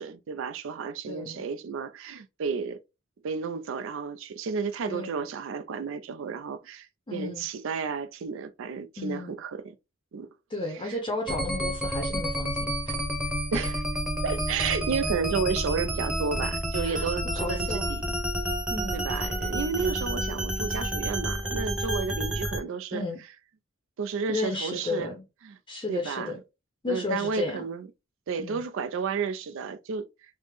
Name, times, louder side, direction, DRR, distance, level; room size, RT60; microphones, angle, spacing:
voice 1, 0.0-2.8 3.2-9.7 10.1-10.3 10.7-11.0 13.5-13.8 14.2-18.1 18.9-23.0 24.0-25.1 25.4-25.6 25.9-26.3 26.9-27.9 28.3-30.1, right 5 dB, 65° right, 0.4 m, -32 dB
voice 2, 1.1-1.4 4.9-5.1 7.1-7.4 9.0-9.4 10.5-12.9 16.8-17.1 17.4-17.9 18.7-19.0 22.9-23.2 24.3-25.2 25.7-26.4 26.8-27.6 28.4-28.6, left 3 dB, 25° left, 0.6 m, -33 dB
sound 1, 11.3-22.6, equal, 5° right, 0.8 m, -30 dB
3.3 x 2.0 x 3.3 m
head